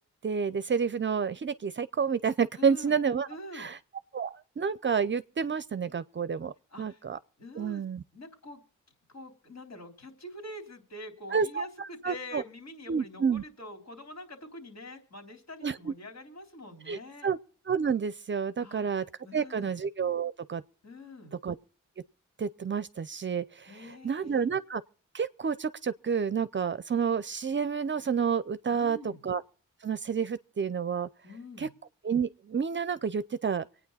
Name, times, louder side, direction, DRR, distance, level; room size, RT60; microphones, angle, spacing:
voice 1, 0.2-3.3 3.5-3.8 4.1-6.5 6.8-7.2 7.6-8.0 11.3-12.4 12.9-13.4 15.6-15.9 16.9-17.4 17.7-19.0 19.3-20.6 21.4-21.6 22.4-24.8 25.1-29.4 29.8-31.1 31.6-31.7 32.0-33.6, right 6 dB, 40° right, 0.5 m, -29 dB
voice 2, 2.6-3.0 3.3-3.7 6.7-7.0 7.4-7.8 8.1-8.6 9.1-17.3 18.6-18.9 19.2-19.7 20.8-21.3 23.7-24.5 28.7-29.2 31.2-31.7, left 1 dB, 60° left, 3.9 m, -45 dB
25.0 x 9.2 x 4.1 m
cardioid pair, 90°, 31 cm